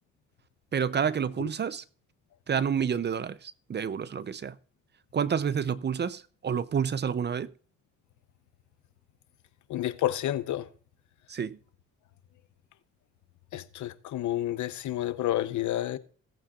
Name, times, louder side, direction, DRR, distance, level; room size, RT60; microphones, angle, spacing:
voice 1, 0.7-1.8 2.5-4.5 5.1-7.5 11.3-11.6, right 7 dB, 35° right, 0.6 m, -29 dB
voice 2, 9.7-10.6 13.5-16.0, left 13 dB, 75° left, 0.8 m, -30 dB
17.5 x 8.5 x 2.5 m
cardioid pair, 90°, 30 cm